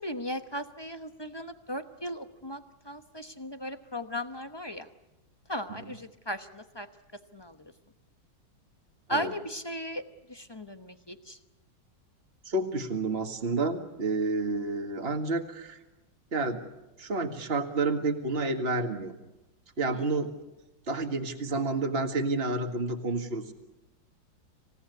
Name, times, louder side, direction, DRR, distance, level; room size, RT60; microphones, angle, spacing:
voice 1, 0.0-4.9 5.5-6.9 7.3-7.7 9.1-10.0 10.3-11.4, equal, 20° left, 8 dB, 0.7 m, -37 dB
voice 2, 12.5-15.8 16.3-16.6 17.0-19.1 19.8-20.3 20.9-23.5, right 3 dB, 35° right, 5 dB, 2.0 m, -30 dB
26.5 x 17.5 x 9.6 m, 1.0 s
omnidirectional pair, 2.0 m